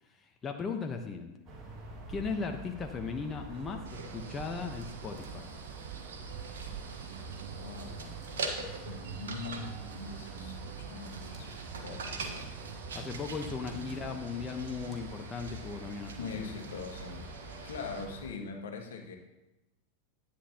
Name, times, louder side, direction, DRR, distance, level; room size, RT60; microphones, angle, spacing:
voice 1, 0.1-1.3 2.1-5.5 12.9-16.5, left 5 dB, 25° left, 3 dB, 1.1 m, -37 dB
sound 1, 1.5-18.3, right 1 dB, 35° right, 2.2 m, -47 dB
sound 2, 3.5-14.2, right 12 dB, 60° right, 0.4 m, -47 dB
sound 3, 3.9-18.0, right 4 dB, 75° right, 1.4 m, -44 dB
voice 2, 7.5-11.5 11.8-12.5 13.7-13.8 16.2-17.3 17.6-19.2, left 5 dB, 75° left, 3 dB, 1.6 m, -43 dB
10.5 x 9.9 x 3.0 m, 0.96 s
hypercardioid pair, 95°, 0 cm